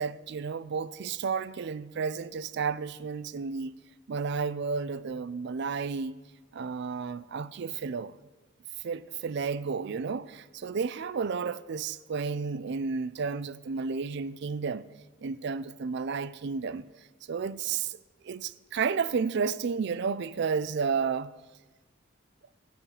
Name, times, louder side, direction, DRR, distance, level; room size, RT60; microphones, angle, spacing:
voice 1, 0.0-3.7 4.1-6.2 6.5-8.2 8.8-14.9 15.2-16.8 17.3-18.0 18.2-21.3, right 5 dB, 60° right, 0.4 m, -32 dB
15.5 x 5.8 x 8.0 m
head